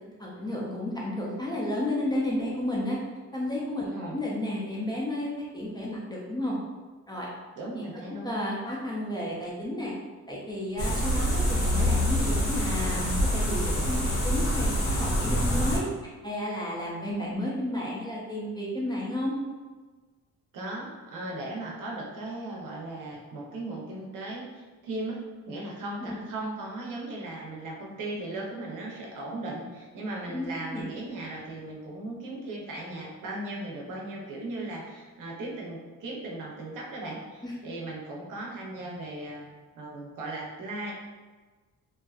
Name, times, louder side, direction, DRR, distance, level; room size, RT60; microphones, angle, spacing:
voice 1, 0.2-3.0 3.3-6.6 7.1-7.3 8.2-9.9 10.3-15.9 16.2-19.4 26.0-26.2 30.3-30.5 30.7-30.8 37.4-37.5, left 1 dB, 15° left, -5 dB, 0.3 m, -32 dB
voice 2, 3.8-4.2 7.5-8.3 20.5-25.2 25.5-39.5 39.7-41.0, right 2 dB, 85° right, -2 dB, 0.7 m, -37 dB
sound 1, 10.8-15.8, equal, 85° left, 0.8 m, -26 dB
2.6 x 2.3 x 2.3 m, 1.3 s
wide cardioid pair, 180°, 31 cm